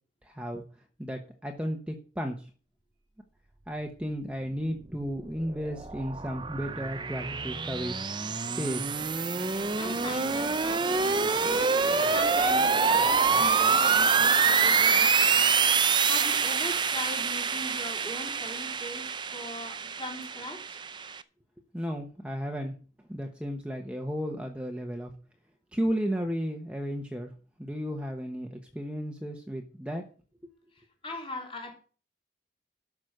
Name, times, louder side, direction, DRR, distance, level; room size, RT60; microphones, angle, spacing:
voice 1, 0.2-0.6 1.0-2.5 3.7-7.9 8.6-8.9 21.7-22.7 23.1-25.1 25.7-27.3 27.6-30.0, equal, 5° right, 1.0 m, -33 dB
sound 1, 5.2-21.2, right 5 dB, 25° right, 0.5 m, -26 dB
voice 2, 9.6-11.7 12.1-15.5 15.7-20.8 30.7-31.7, left 1 dB, 30° left, 3.2 m, -40 dB
12.5 x 6.1 x 6.6 m
head